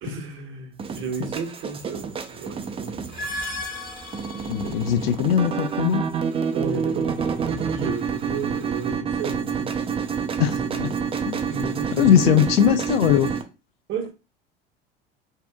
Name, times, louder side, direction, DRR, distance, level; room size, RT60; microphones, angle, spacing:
voice 1, 0.0-3.3 4.6-5.3 6.5-9.8 10.5-11.0 11.5-12.7 13.9-14.1, right 4 dB, 40° right, 0.8 m, -33 dB
sound 1, 0.8-13.4, right 6 dB, 20° right, 0.4 m, -28 dB
sound 2, 3.0-5.2, left 2 dB, 30° left, 0.9 m, -35 dB
voice 2, 4.5-6.1 10.4-10.9 11.3-11.4 12.0-13.3, left 10 dB, 75° left, 0.5 m, -20 dB
2.7 x 2.4 x 2.3 m
hypercardioid pair, 75°, 30 cm